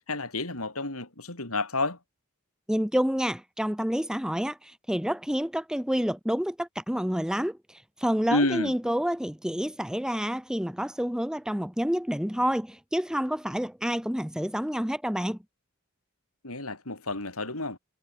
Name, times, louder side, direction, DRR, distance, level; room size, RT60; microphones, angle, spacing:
voice 1, 0.1-2.0 8.3-8.7 16.4-17.8, left 2 dB, 70° left, 7.4 m, -30 dB
voice 2, 2.7-15.4, equal, 5° right, 1.3 m, -28 dB
head